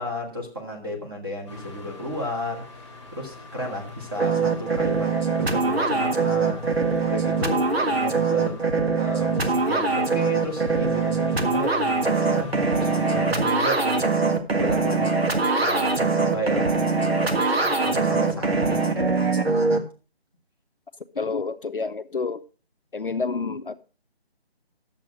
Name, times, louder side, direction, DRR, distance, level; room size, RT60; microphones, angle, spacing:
voice 1, 0.0-2.7 3.1-5.1 5.4-6.7 7.1-15.3 15.6-19.3, equal, 20° right, 1.7 m, -33 dB
sound 1, 1.5-13.2, left 3 dB, 5° left, 1.8 m, -42 dB
sound 2, 4.2-19.8, right 4 dB, 70° right, 1.7 m, -22 dB
voice 2, 21.2-22.4 22.9-23.8, left 4 dB, 55° left, 0.7 m, -29 dB
10.5 x 7.4 x 4.8 m
figure-of-eight pair, 180°, 32 cm